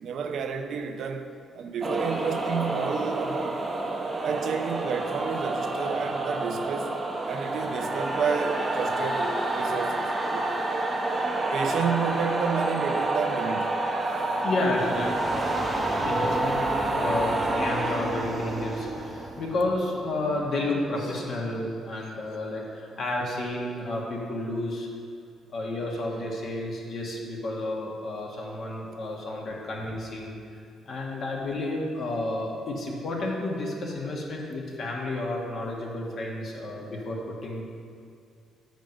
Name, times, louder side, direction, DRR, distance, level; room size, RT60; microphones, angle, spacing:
voice 1, 0.0-3.7 4.2-7.0 7.3-10.5 11.5-13.8 28.1-28.3 29.0-29.3 29.8-29.9 36.7-36.9, right 6 dB, 65° right, 6 dB, 0.6 m, -31 dB
sound 1, 1.8-20.3, right 2 dB, 25° right, 0.9 m, -28 dB
voice 2, 14.4-15.7 16.0-16.6 16.9-24.9 25.5-30.4 30.8-37.6, left 2 dB, 60° left, -2 dB, 1.5 m, -31 dB
7.5 x 5.2 x 5.3 m, 2.3 s
cardioid pair, 90°, 0 cm